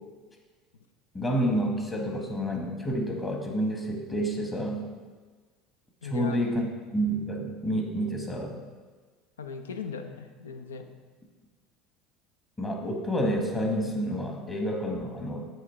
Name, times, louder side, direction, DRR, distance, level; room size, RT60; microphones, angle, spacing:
voice 1, 1.1-4.8 6.1-6.7 6.9-8.6 12.6-15.4, equal, 20° left, 2 dB, 1.2 m, -29 dB
voice 2, 6.0-6.6 9.4-10.9, left 5 dB, 85° left, 7 dB, 0.4 m, -38 dB
7.5 x 3.0 x 4.5 m, 1.4 s
hypercardioid pair, 75°, 0 cm